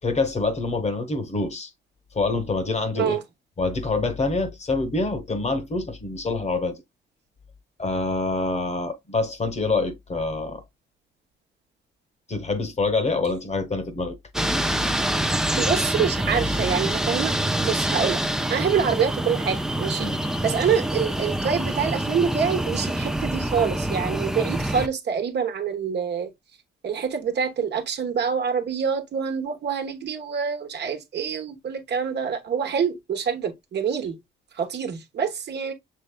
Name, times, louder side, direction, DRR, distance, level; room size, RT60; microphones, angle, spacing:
voice 1, 0.0-1.7 2.1-3.2 3.6-6.8 7.8-10.6 12.3-14.2 20.0-20.2, left 3 dB, 35° left, 1.2 m, -26 dB
sound 1, 14.3-24.9, right 1 dB, 5° right, 0.5 m, -26 dB
voice 2, 15.6-17.3 17.6-18.2 18.5-20.1 20.4-26.3 26.8-34.2 34.5-35.7, right 7 dB, 60° right, 1.1 m, -26 dB
6.7 x 3.2 x 2.2 m
cardioid pair, 90°, 20 cm